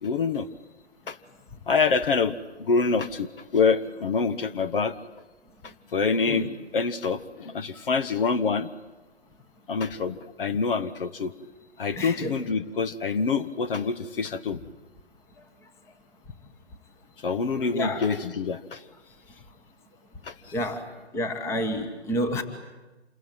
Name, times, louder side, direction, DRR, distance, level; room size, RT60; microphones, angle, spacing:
voice 1, 0.0-0.5 1.1-1.2 1.7-5.0 5.6-8.7 9.7-11.3 11.8-14.6 17.2-18.8 20.2-20.5, left 5 dB, 50° left, 13 dB, 1.2 m, -26 dB
voice 2, 11.9-12.3 17.7-18.0 20.5-20.9 21.1-22.4, left 1 dB, 10° left, 9 dB, 1.3 m, -29 dB
27.5 x 22.5 x 9.1 m, 1.2 s
hypercardioid pair, 150°, 34 cm